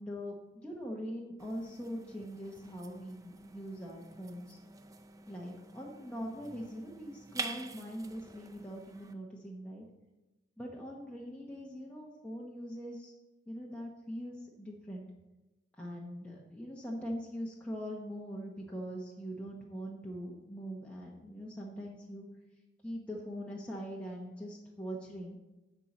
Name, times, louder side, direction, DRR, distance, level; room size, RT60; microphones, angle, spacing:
voice 1, 0.0-4.6 5.3-9.8 10.6-13.1 13.5-15.1 15.8-22.3 22.8-25.4, equal, 5° left, -4 dB, 1.0 m, -42 dB
sound 1, 1.4-9.1, right 4 dB, 20° right, 0.5 m, -47 dB
10.5 x 4.6 x 7.1 m, 1.1 s
head